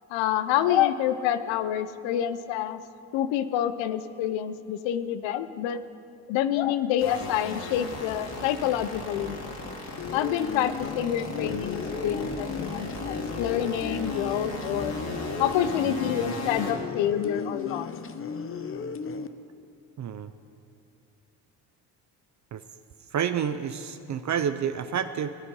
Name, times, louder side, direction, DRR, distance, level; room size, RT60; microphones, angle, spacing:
voice 1, 0.1-2.8 3.1-5.8 6.3-9.4 10.1-15.0 15.4-17.9, left 11 dB, 80° left, 13 dB, 0.8 m, -27 dB
sound 1, 7.0-16.7, left 2 dB, 55° left, 3.0 m, -36 dB
sound 2, 10.0-19.3, left 5 dB, 30° left, 0.7 m, -35 dB
voice 2, 20.0-20.3 22.5-22.6 23.1-25.3, right 8 dB, 40° right, 10 dB, 0.6 m, -29 dB
17.0 x 9.7 x 5.5 m, 2.9 s
supercardioid pair, 75°, 44 cm